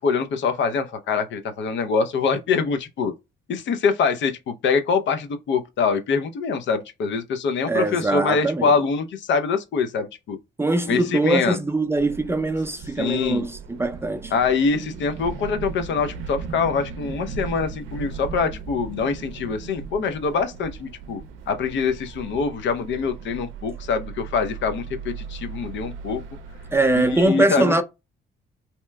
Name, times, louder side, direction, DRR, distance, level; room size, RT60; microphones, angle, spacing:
voice 1, 0.0-3.1 3.5-10.4 10.9-11.6 13.0-13.5 14.3-21.2 21.5-26.2 26.9-27.8, left 5 dB, 70° left, 0.6 m, -24 dB
voice 2, 7.7-8.7 10.6-14.3 26.7-27.8, right 2 dB, 10° right, 0.4 m, -22 dB
sound 1, 12.0-27.3, right 5 dB, 90° right, 0.5 m, -37 dB
2.9 x 2.1 x 3.3 m
cardioid pair, 90°, 20 cm